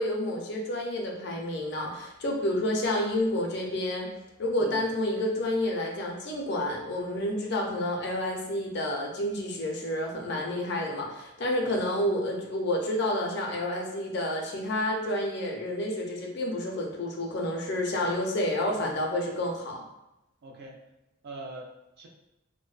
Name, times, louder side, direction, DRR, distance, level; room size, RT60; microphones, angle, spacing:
voice 1, 0.0-4.1 4.4-19.8, left 1 dB, 55° left, 0 dB, 0.4 m, -29 dB
voice 2, 4.6-4.9 10.3-10.5 11.6-11.8 18.6-18.9 19.2-19.9 20.4-20.8 21.2-22.1, right 2 dB, 50° right, 0 dB, 0.4 m, -45 dB
2.5 x 2.1 x 2.3 m, 0.93 s
head